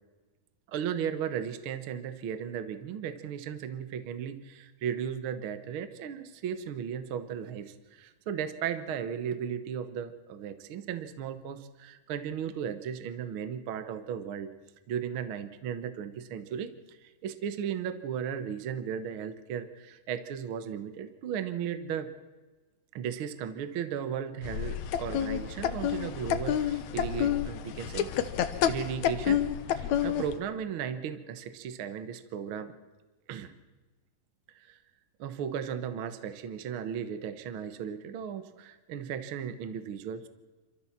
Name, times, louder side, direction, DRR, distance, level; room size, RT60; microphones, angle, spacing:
voice 1, 0.7-14.5 14.9-22.1 22.9-28.1 28.7-29.5 29.8-32.7 33.3-33.5 34.5-34.8 35.2-40.3, right 8 dB, 75° right, 11 dB, 1.2 m, -36 dB
sound 1, 24.4-30.4, left 10 dB, 70° left, 2.0 m, -29 dB
26.5 x 13.5 x 7.3 m, 1.2 s
omnidirectional pair, 4.0 m